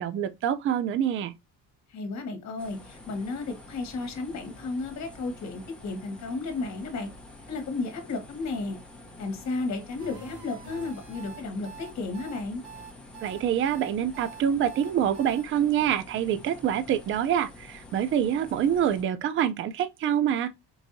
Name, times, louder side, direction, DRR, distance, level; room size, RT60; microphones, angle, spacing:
voice 1, 0.0-1.3 13.2-20.5, right 9 dB, 35° right, 0.4 m, -26 dB
voice 2, 1.9-7.1 7.5-8.8 9.2-12.6, left 3 dB, 45° left, 1.3 m, -33 dB
sound 1, 2.6-19.0, left 2 dB, 5° left, 0.9 m, -48 dB
sound 2, 10.0-15.4, right 6 dB, 90° right, 2.5 m, -45 dB
4.6 x 2.6 x 2.6 m
cardioid pair, 145°, 38 cm